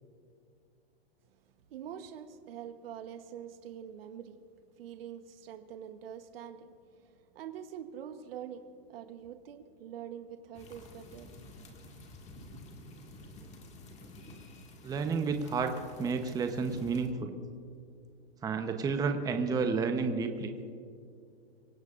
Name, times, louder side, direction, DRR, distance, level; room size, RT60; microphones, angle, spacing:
voice 1, 1.7-4.4 4.8-11.3 12.4-12.5, right 9 dB, 65° right, 8 dB, 1.1 m, -45 dB
sound 1, 10.5-17.1, left 2 dB, 20° left, 1.9 m, -51 dB
voice 2, 14.8-15.7 16.0-17.3 18.4-20.5, right 5 dB, 10° right, 6 dB, 0.8 m, -31 dB
24.5 x 17.0 x 2.5 m, 2.3 s
hypercardioid pair, 130°, 31 cm